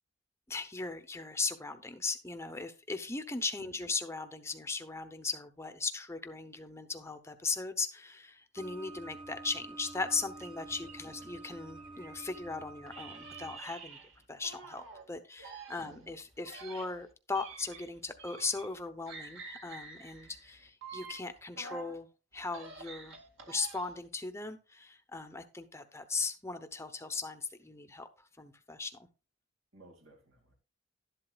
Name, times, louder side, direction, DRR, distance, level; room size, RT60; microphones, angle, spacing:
voice 1, 0.5-14.0 14.3-22.1 22.3-23.2 23.5-29.0, left 4 dB, 10° left, 7 dB, 0.8 m, -38 dB
sound 1, 8.6-13.6, right 2 dB, 25° right, 1.0 m, -48 dB
sound 2, 10.4-12.4 12.9-15.0 15.4-18.8 19.1-22.0 22.4-24.1, right 4 dB, 60° right, 2.0 m, -49 dB
voice 2, 10.8-11.2 15.8-16.1 29.7-30.6, right 2 dB, 75° right, 1 dB, 2.2 m, -58 dB
12.0 x 11.0 x 2.3 m, 0.31 s
head